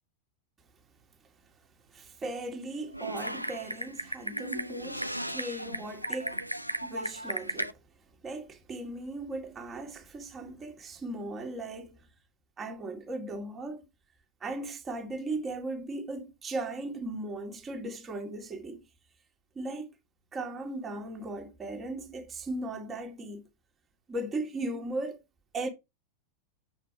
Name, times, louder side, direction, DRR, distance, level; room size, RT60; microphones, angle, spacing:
voice 1, 1.9-6.5 6.8-7.8 8.2-12.0 12.6-13.9 14.4-18.8 19.6-19.9 20.3-23.5 24.1-25.2 25.5-25.7, right 2 dB, 20° right, 2.0 m, -37 dB
Typing, 2.9-7.7, equal, 90° right, 0.5 m, -35 dB
7.7 x 4.5 x 4.8 m
figure-of-eight pair, 90°, 0 cm